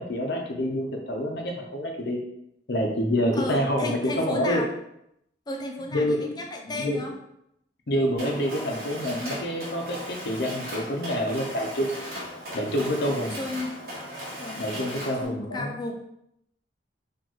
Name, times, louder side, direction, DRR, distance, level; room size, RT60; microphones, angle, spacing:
voice 1, 0.0-2.2 2.7-4.6 5.9-6.3 6.6-7.0 7.9-11.9 12.5-13.4 14.6-15.8, equal, 60° left, 2 dB, 0.7 m, -27 dB
voice 2, 3.3-4.7 5.5-7.1 13.0-13.7 14.4-15.9, left 2 dB, 20° left, 1 dB, 0.5 m, -34 dB
Mechanisms, 8.2-15.3, equal, 55° right, 1.2 m, -37 dB
4.4 x 2.6 x 3.0 m, 0.78 s
head